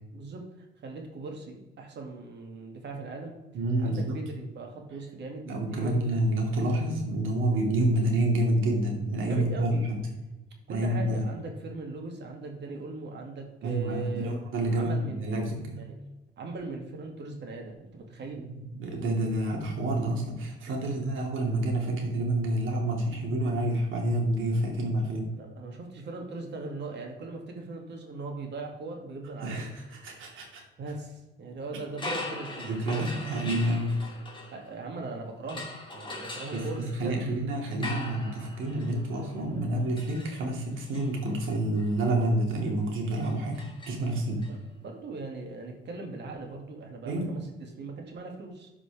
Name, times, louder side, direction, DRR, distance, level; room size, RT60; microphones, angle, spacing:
voice 1, 0.1-3.4 3.8-6.1 9.2-9.9 10.7-14.4 14.7-15.2 15.8-16.0 16.4-18.5 20.8-21.0 25.3-29.7 30.8-33.1 34.5-37.2 44.5-48.7, right 3 dB, 60° right, 1 dB, 2.2 m, -40 dB
voice 2, 3.5-4.2 5.4-9.9 10.7-11.2 13.6-15.9 18.3-25.3 29.4-30.6 32.6-34.0 36.5-43.6 43.9-44.5 47.1-47.3, right 1 dB, 80° right, 0 dB, 2.4 m, -28 dB
sound 1, 31.9-35.0 35.5-44.5, left 2 dB, 25° left, 2.4 m, -42 dB
13.0 x 5.0 x 3.5 m, 1.1 s
cardioid pair, 90°, 20 cm